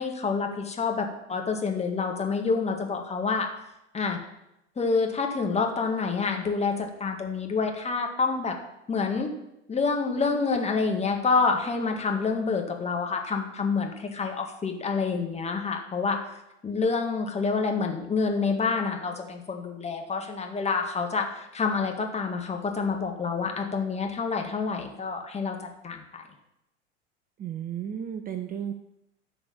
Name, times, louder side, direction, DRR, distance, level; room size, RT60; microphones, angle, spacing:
voice 1, 0.0-3.5 3.9-4.2 4.8-8.6 8.9-9.3 9.7-16.2 16.6-25.6 25.8-26.2, left 4 dB, 20° left, 3 dB, 2.0 m, -27 dB
voice 2, 27.4-28.7, right 9 dB, 25° right, 8 dB, 0.7 m, -33 dB
13.0 x 5.1 x 7.1 m, 0.85 s
figure-of-eight pair, 80°, 35 cm